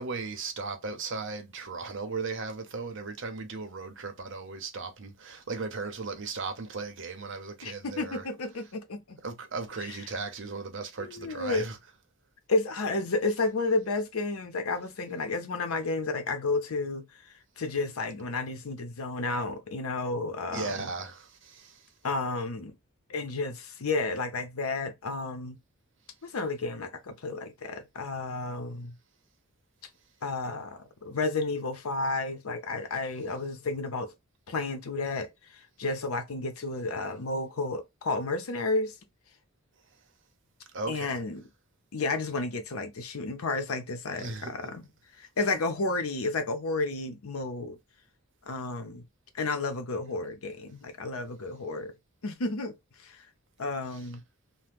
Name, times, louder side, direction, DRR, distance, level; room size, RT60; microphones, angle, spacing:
voice 1, 0.0-8.2 9.2-11.8 20.5-21.8 40.7-41.1 44.2-44.5, right 4 dB, 60° right, 0.7 m, -36 dB
voice 2, 7.6-9.2 9.8-10.1 11.0-11.7 12.5-17.1 17.6-20.9 22.0-22.8 23.1-25.6 26.2-28.9 30.2-34.1 34.5-39.0 40.9-41.5 41.9-44.9 45.2-47.8 48.5-49.0 49.3-51.9 52.2-52.7 53.0-53.2 53.6-54.2, left 3 dB, 80° left, 0.7 m, -32 dB
2.9 x 2.1 x 3.4 m
head